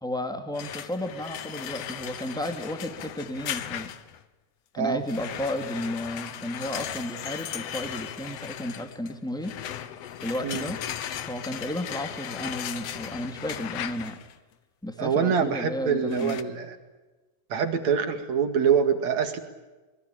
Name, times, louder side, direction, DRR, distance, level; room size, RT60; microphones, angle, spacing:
voice 1, 0.0-3.9 4.7-9.5 10.2-10.8 11.3-14.2 14.8-16.4, left 1 dB, ahead, 5 dB, 1.7 m, -33 dB
sound 1, 0.5-4.2 5.1-14.3 16.1-16.4, left 10 dB, 85° left, 1.4 m, -37 dB
voice 2, 15.0-16.8 17.5-19.4, right 7 dB, 50° right, 7 dB, 2.9 m, -25 dB
26.0 x 21.5 x 8.7 m, 1.2 s
omnidirectional pair, 4.5 m